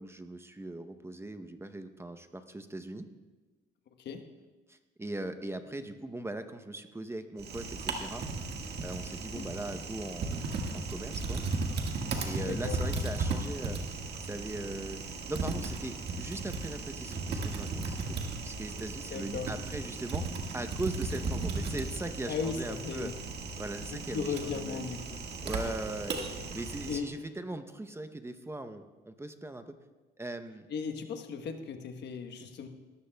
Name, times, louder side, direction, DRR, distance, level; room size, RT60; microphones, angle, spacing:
voice 1, 0.0-3.1 4.7-8.3 8.8-11.4 12.3-13.8 14.2-15.0 15.3-18.2 18.4-20.2 20.5-23.1 23.6-24.9 25.4-26.2 26.5-29.7 30.2-30.7, right 2 dB, 15° right, 9 dB, 0.7 m, -39 dB
Typing, 7.4-27.0, right 3 dB, 65° right, 1.7 m, -36 dB
voice 2, 12.4-12.8 19.1-19.5 22.3-23.1 23.9-25.3 25.6-25.7 26.9-27.1 30.7-32.7, left 6 dB, 65° left, 6 dB, 1.2 m, -37 dB
18.5 x 13.5 x 2.3 m, 1.3 s
cardioid pair, 85°, 19 cm